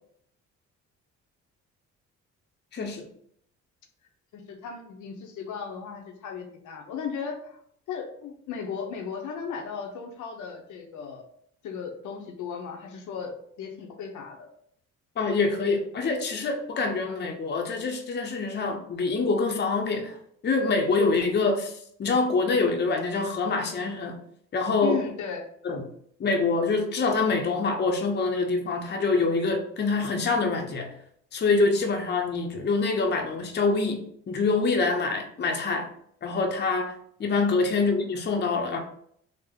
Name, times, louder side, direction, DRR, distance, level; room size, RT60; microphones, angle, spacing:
voice 1, 2.7-3.1 15.2-20.2 20.4-24.2 24.5-25.0 25.6-25.8 26.2-30.9 31.3-35.9 36.2-38.8, left 3 dB, 35° left, 4 dB, 0.6 m, -25 dB
voice 2, 4.3-7.6 7.9-11.2 11.6-14.5 24.8-25.4 37.3-37.5, left 6 dB, 80° left, 3 dB, 0.7 m, -36 dB
3.5 x 2.0 x 3.5 m, 0.66 s
cardioid pair, 90°, 30 cm